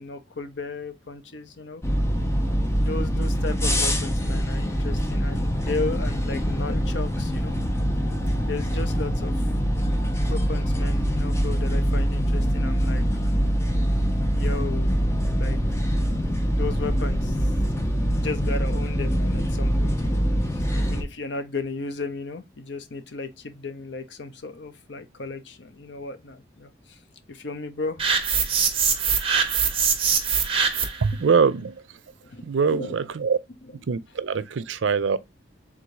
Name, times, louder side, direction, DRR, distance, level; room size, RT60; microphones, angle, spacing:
voice 1, 0.0-1.8 2.8-7.9 8.4-9.4 10.2-13.0 14.3-15.0 15.4-15.6 16.5-17.5 18.0-27.0 27.3-28.0 31.1-31.2 32.2-33.0 33.7-33.8, left 3 dB, 70° left, 0.7 m, -35 dB
sound 1, 1.8-21.0, equal, 15° left, 0.6 m, -24 dB
sound 2, 28.0-31.1, right 6 dB, 30° right, 0.9 m, -23 dB
voice 2, 31.0-31.7 32.4-33.4 33.9-35.2, right 5 dB, 80° right, 0.5 m, -23 dB
3.6 x 2.6 x 4.7 m
head